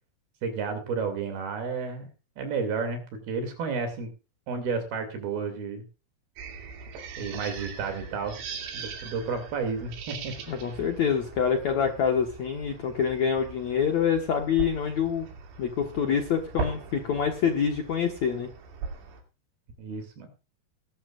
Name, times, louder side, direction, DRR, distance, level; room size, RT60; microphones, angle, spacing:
voice 1, 0.4-2.1 2.4-4.1 4.5-5.8 7.2-8.4 8.7-10.3 19.8-20.3, right 5 dB, 65° right, 7 dB, 4.3 m, -31 dB
sound 1, 6.4-19.2, right 4 dB, 85° right, 4.6 m, -40 dB
voice 2, 10.5-15.3 15.6-18.5, left 7 dB, 60° left, 3 dB, 2.0 m, -26 dB
20.5 x 11.5 x 2.5 m, 0.32 s
omnidirectional pair, 5.0 m